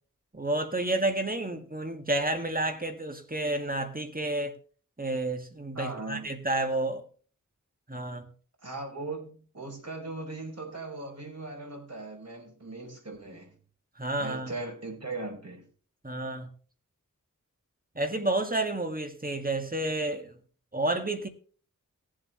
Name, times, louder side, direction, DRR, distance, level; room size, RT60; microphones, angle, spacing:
voice 1, 0.3-4.6 5.0-7.0 7.9-8.3 14.0-14.5 16.0-16.5 18.0-20.3 20.7-21.3, right 2 dB, 25° right, 1.9 m, -30 dB
voice 2, 5.7-6.3 8.6-13.5 14.2-15.7, right 2 dB, 50° right, 5.0 m, -39 dB
19.0 x 7.8 x 3.2 m
wide cardioid pair, 70°, 32 cm